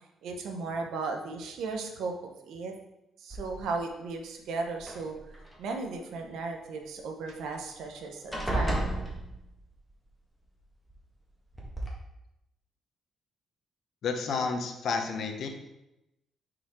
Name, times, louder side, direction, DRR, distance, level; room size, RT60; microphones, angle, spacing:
voice 1, 0.2-2.2 2.4-2.7 3.2-5.2 5.6-8.9, right 3 dB, 80° right, 3 dB, 0.9 m, -35 dB
sound 1, 3.3-3.9 4.7-5.6 7.4-7.5 7.8-8.0 8.3-9.7 10.9-11.0 11.5-11.9, right 1 dB, 5° right, 1.7 m, -33 dB
voice 2, 14.0-15.5, left 5 dB, 65° left, 5 dB, 0.9 m, -31 dB
5.8 x 5.0 x 3.7 m, 0.90 s
cardioid pair, 90°, 0 cm